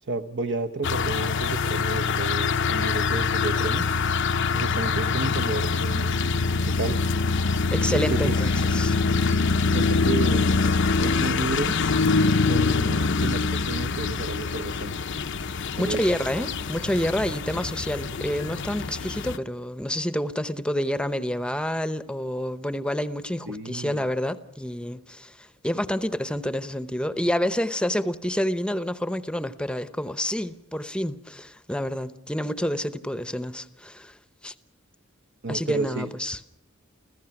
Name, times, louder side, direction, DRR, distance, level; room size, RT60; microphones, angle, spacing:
voice 1, 0.0-3.9 4.5-6.1 6.6-7.0 7.9-8.5 9.7-10.5 11.0-11.7 12.5-15.0 15.8-16.2 23.5-24.0 35.4-36.1, right 3 dB, 60° right, 0.9 m, -31 dB
sound 1, 0.8-19.4, left 4 dB, 60° left, 0.8 m, -24 dB
voice 2, 7.7-9.0 15.6-34.2 34.4-34.5 35.5-36.4, equal, 5° left, 0.8 m, -28 dB
29.0 x 15.5 x 6.0 m
head